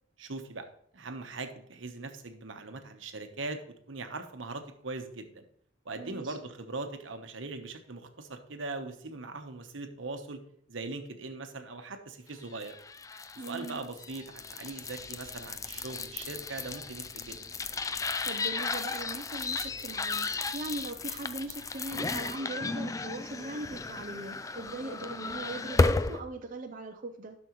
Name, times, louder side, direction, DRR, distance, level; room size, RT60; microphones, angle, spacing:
voice 1, 0.2-0.7 0.9-3.6 3.9-5.4 5.8-10.4 10.7-12.8 13.4-17.4, right 3 dB, 75° right, 7 dB, 1.0 m, -40 dB
voice 2, 6.0-6.4 13.4-13.8 18.2-27.4, right 2 dB, 45° right, 3 dB, 0.6 m, -40 dB
sound 1, 12.5-26.2, left 3 dB, 15° left, 0.3 m, -34 dB
11.5 x 6.3 x 3.0 m, 0.68 s
head